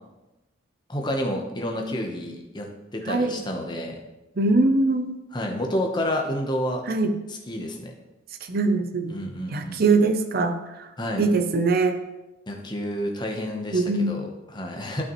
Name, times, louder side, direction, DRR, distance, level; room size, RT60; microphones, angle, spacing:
voice 1, 0.9-4.0 5.3-6.8 7.3-7.9 9.1-9.8 11.0-11.3 12.5-15.0, equal, 20° left, 2 dB, 0.9 m, -29 dB
voice 2, 3.1-3.4 4.4-5.2 6.9-7.1 8.5-9.2 9.5-10.9 11.2-12.0 13.7-14.2, right 3 dB, 45° right, 7 dB, 0.6 m, -22 dB
12.0 x 5.9 x 3.1 m, 1.0 s
head